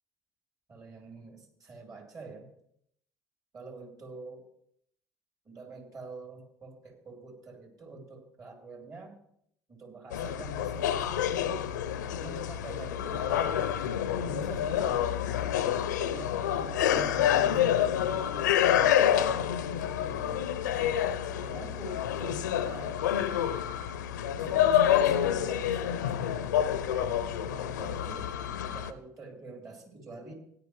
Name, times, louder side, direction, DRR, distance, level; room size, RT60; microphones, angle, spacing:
voice 1, 0.7-2.5 3.5-4.5 5.5-9.2 9.7-11.7 12.1-15.1 16.0-19.5 19.8-20.5 21.3-23.0 24.2-26.5 26.9-28.3 28.7-30.3, right 3 dB, 40° right, 2 dB, 3.5 m, -45 dB
sound 1, 10.1-28.9, left 10 dB, 80° left, 0.5 m, -28 dB
16.5 x 10.0 x 3.2 m, 0.70 s
figure-of-eight pair, 60°, 10 cm